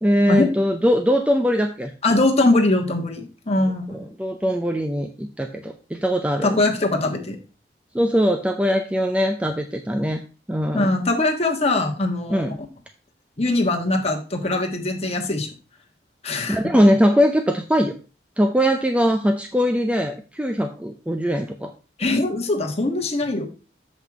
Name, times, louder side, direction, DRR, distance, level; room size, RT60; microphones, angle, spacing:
voice 1, 0.0-1.9 3.9-6.6 7.9-10.2 10.5-11.0 12.3-12.6 16.5-17.9 18.4-21.7, equal, 5° right, 5 dB, 0.5 m, -21 dB
voice 2, 2.0-4.0 6.4-7.4 10.7-12.5 13.4-15.5 16.2-16.6 22.0-23.5, left 2 dB, 35° left, 2 dB, 1.5 m, -22 dB
7.5 x 5.8 x 4.7 m, 0.34 s
head